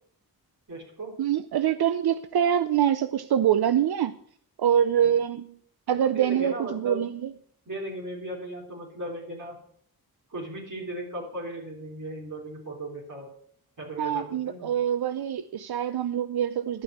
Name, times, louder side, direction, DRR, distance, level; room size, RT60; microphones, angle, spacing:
voice 1, 0.7-1.1 5.0-5.1 5.9-7.0 7.7-9.6 10.3-13.3 13.8-14.7, right 1 dB, 55° right, -2 dB, 3.8 m, -37 dB
voice 2, 1.2-4.2 4.6-5.6 5.9-7.3 14.0-16.8, right 9 dB, 80° right, 12 dB, 0.6 m, -25 dB
12.0 x 5.8 x 7.8 m, 0.62 s
wide cardioid pair, 75°, 37 cm